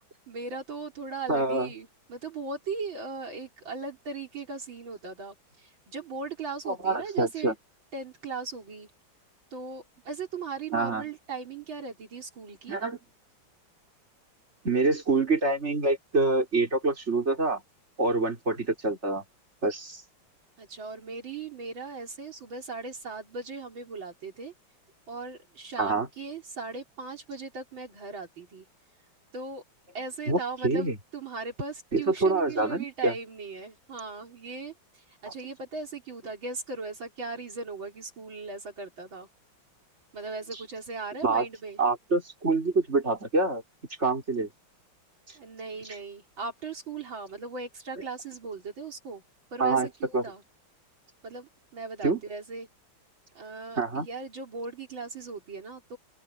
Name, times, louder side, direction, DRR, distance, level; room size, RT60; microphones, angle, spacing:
voice 1, 0.3-7.5 7.9-8.9 9.5-12.8 20.6-24.5 25.1-28.7 29.3-29.6 29.9-39.3 40.1-41.8 45.4-49.2 49.5-50.4 51.2-52.7 53.3-56.0, right 4 dB, 70° right, 4.3 m, -38 dB
voice 2, 1.3-1.7 6.7-7.5 10.7-11.0 12.7-13.0 14.6-17.6 18.0-19.2 19.6-20.0 25.8-26.1 30.3-31.0 31.9-33.1 35.2-35.3 41.2-41.4 41.8-43.6 44.0-44.5 49.6-50.2 52.0-52.2 53.8-54.1, right 3 dB, 30° right, 5.2 m, -26 dB
open air
omnidirectional pair, 2.2 m